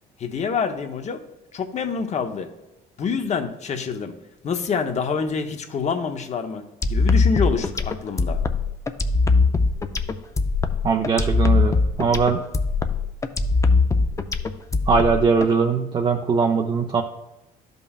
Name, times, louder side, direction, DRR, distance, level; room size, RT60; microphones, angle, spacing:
voice 1, 0.2-1.2 1.5-2.5 3.0-4.1 4.4-8.4, left 5 dB, 45° left, 7 dB, 0.9 m, -26 dB
sound 1, 6.8-15.5, left 4 dB, 20° left, 0.5 m, -21 dB
voice 2, 10.8-12.4 14.9-17.0, right 5 dB, 30° right, 2 dB, 0.6 m, -21 dB
12.5 x 5.3 x 2.4 m, 0.97 s
cardioid pair, 110°, 17 cm